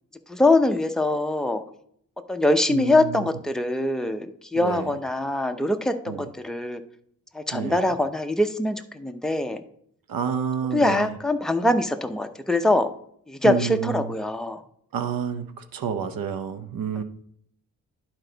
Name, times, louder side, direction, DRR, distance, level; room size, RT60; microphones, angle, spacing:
voice 1, 0.3-1.6 2.3-6.8 7.3-9.6 10.7-12.9 13.3-14.6 17.0-17.1, left 2 dB, ahead, 6 dB, 0.6 m, -23 dB
voice 2, 2.7-3.3 4.5-4.9 6.1-6.3 7.5-7.9 10.1-11.2 13.4-14.1 14.9-17.0, right 7 dB, 85° right, 9 dB, 0.8 m, -29 dB
11.0 x 4.5 x 3.9 m, 0.67 s
wide cardioid pair, 105°, 33 cm